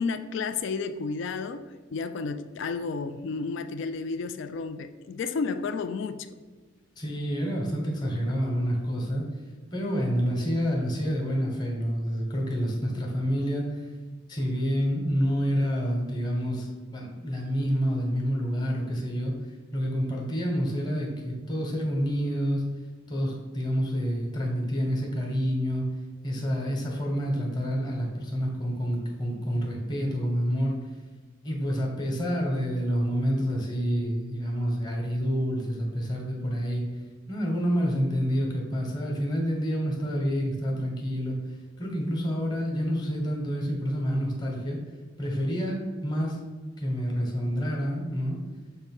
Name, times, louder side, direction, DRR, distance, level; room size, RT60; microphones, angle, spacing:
voice 1, 0.0-6.4, left 4 dB, 60° left, 10 dB, 0.3 m, -32 dB
voice 2, 7.0-9.3 9.7-13.8 14.3-19.3 19.7-22.6 23.1-25.9 26.2-30.8 31.4-36.8 37.3-41.4 41.8-44.8 45.2-46.4 46.8-48.4, equal, 20° left, -1 dB, 1.1 m, -28 dB
6.8 x 2.6 x 5.3 m, 1.3 s
head